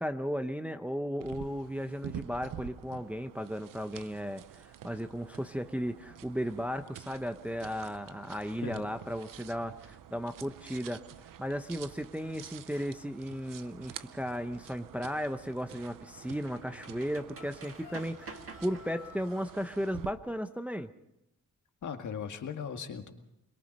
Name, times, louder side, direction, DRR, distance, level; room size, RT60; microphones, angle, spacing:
voice 1, 0.0-11.1 11.4-20.9, equal, 5° right, 7 dB, 0.7 m, -35 dB
sound 1, 1.2-20.1, right 10 dB, 90° right, 0.8 m, -48 dB
sound 2, 12.7-12.8 15.2-19.3, right 4 dB, 45° right, 1.8 m, -50 dB
sound 3, 17.3-19.4, left 6 dB, 85° left, 2.7 m, -53 dB
voice 2, 21.8-23.1, left 7 dB, 65° left, 5 dB, 2.0 m, -38 dB
23.0 x 21.5 x 5.4 m, 0.84 s
wide cardioid pair, 145°, 32 cm